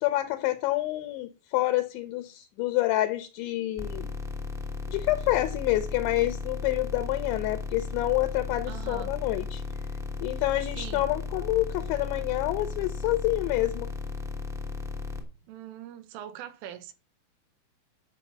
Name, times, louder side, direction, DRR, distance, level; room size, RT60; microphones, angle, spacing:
voice 1, 0.0-4.1 4.9-9.6 10.2-13.9, left 16 dB, 75° left, 3.0 m, -28 dB
sound 1, 3.8-15.2, left 4 dB, 5° right, 0.6 m, -35 dB
voice 2, 8.7-9.1 10.8-11.1 15.5-16.9, right 11 dB, 85° right, 3.8 m, -42 dB
11.5 x 6.3 x 7.3 m
omnidirectional pair, 5.6 m